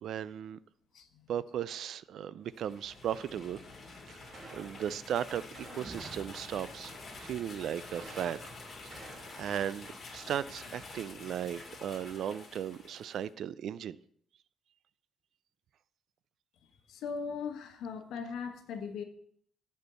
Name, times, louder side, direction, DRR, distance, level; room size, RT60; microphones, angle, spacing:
voice 1, 0.0-0.6 1.3-3.6 4.1-8.5 9.0-14.0, right 9 dB, 65° right, 0.3 m, -37 dB
voice 2, 0.9-1.3 16.6-19.0, left 5 dB, 85° left, 1.2 m, -39 dB
sound 1, 2.4-13.3, left 3 dB, 35° left, 2.2 m, -48 dB
sound 2, 4.3-5.1 5.5-6.4 7.9-9.7, right 2 dB, 50° right, 2.1 m, -52 dB
Boom, 5.9-9.7, right 3 dB, 30° right, 0.9 m, -53 dB
8.0 x 4.4 x 6.9 m
cardioid pair, 140°, 0 cm